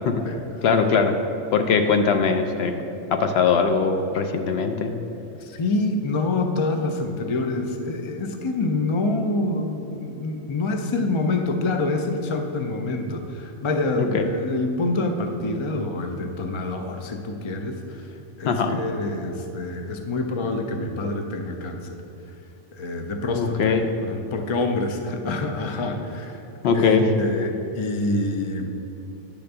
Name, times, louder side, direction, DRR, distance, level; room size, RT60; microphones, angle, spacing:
voice 1, 0.6-1.2 1.5-2.8 3.1-4.9 14.0-14.3 18.5-18.8 23.4-23.9 26.6-27.1, left 5 dB, 65° left, 6 dB, 0.7 m, -21 dB
voice 2, 5.4-18.0 18.4-22.0 22.7-23.8 24.0-26.4 26.7-28.7, left 2 dB, 50° left, 5 dB, 0.3 m, -26 dB
10.0 x 3.4 x 6.6 m, 2.8 s
omnidirectional pair, 1.3 m